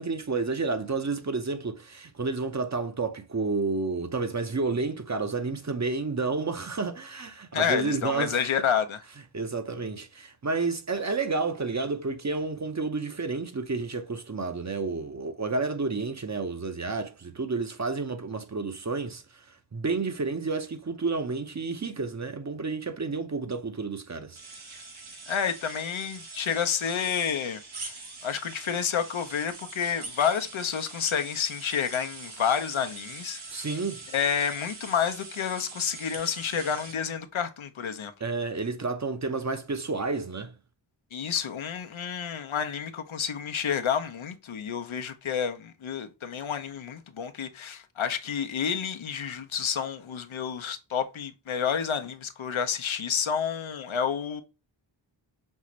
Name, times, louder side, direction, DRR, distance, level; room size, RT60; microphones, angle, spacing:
voice 1, 0.0-8.5 9.3-19.2 19.7-24.4 33.5-34.0 38.2-40.5, right 3 dB, 35° right, 0.7 m, -30 dB
voice 2, 7.5-9.0 25.3-33.8 34.1-38.1 41.1-54.4, left 7 dB, 80° left, 0.7 m, -29 dB
sound 1, 24.4-36.9, right 3 dB, 90° right, 1.3 m, -43 dB
5.4 x 2.5 x 3.0 m
wide cardioid pair, 65°, 47 cm